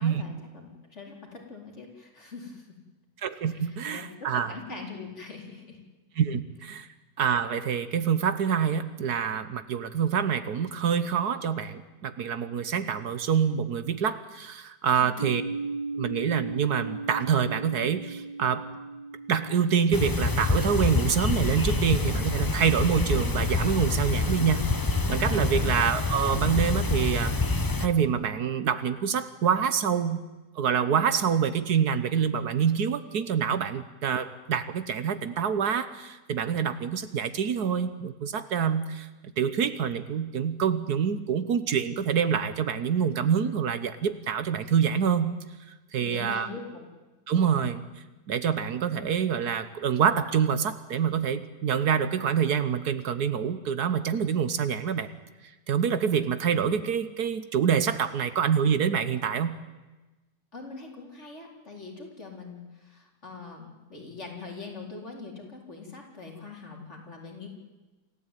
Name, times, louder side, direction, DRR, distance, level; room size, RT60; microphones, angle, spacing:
voice 1, 0.0-2.7 3.5-5.8 14.9-15.2 46.0-46.8 60.5-67.5, left 4 dB, 40° left, 0 dB, 4.5 m, -43 dB
voice 2, 3.2-4.5 6.2-6.9 7.2-15.4 16.0-18.6 19.3-24.7 25.1-27.3 27.8-30.2 30.5-39.1 39.4-45.3 45.9-46.5 47.3-47.8 48.3-55.1 55.7-59.6, right 7 dB, 70° right, 12 dB, 1.5 m, -26 dB
sound 1, 15.2-23.0, right 3 dB, 20° right, 3.7 m, -38 dB
sound 2, 19.9-27.9, left 3 dB, 20° left, 0.6 m, -26 dB
27.5 x 14.5 x 9.1 m, 1.2 s
omnidirectional pair, 1.8 m